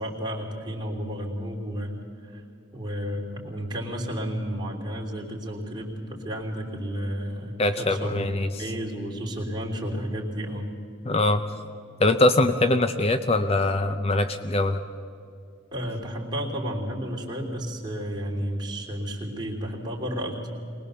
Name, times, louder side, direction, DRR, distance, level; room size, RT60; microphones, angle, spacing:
voice 1, 0.0-2.4 2.7-10.7 15.7-20.4, equal, 20° right, -2 dB, 3.2 m, -32 dB
voice 2, 7.6-8.7 11.1-11.6 12.0-14.8, left 2 dB, 30° left, 9 dB, 0.6 m, -23 dB
23.5 x 19.5 x 6.9 m, 2.5 s
head